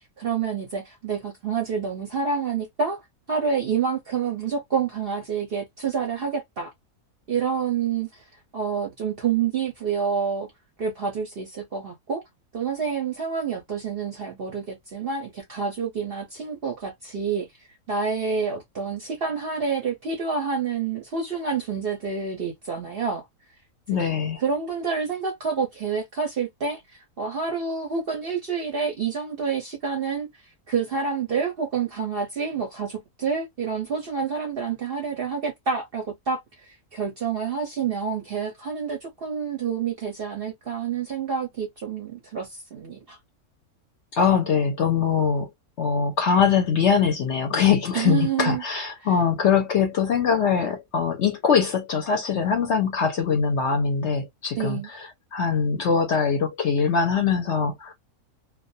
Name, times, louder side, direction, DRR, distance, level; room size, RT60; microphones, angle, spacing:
voice 1, 0.2-3.0 3.3-6.7 7.3-8.2 8.5-10.5 10.8-12.2 12.5-17.5 17.9-23.2 24.4-30.3 30.7-43.2 47.9-48.6 54.6-54.9, right 6 dB, 55° right, 0.6 m, -28 dB
voice 2, 23.9-24.4 44.1-45.5 45.8-57.9, left 6 dB, 60° left, 0.7 m, -22 dB
2.4 x 2.1 x 2.6 m
omnidirectional pair, 1.6 m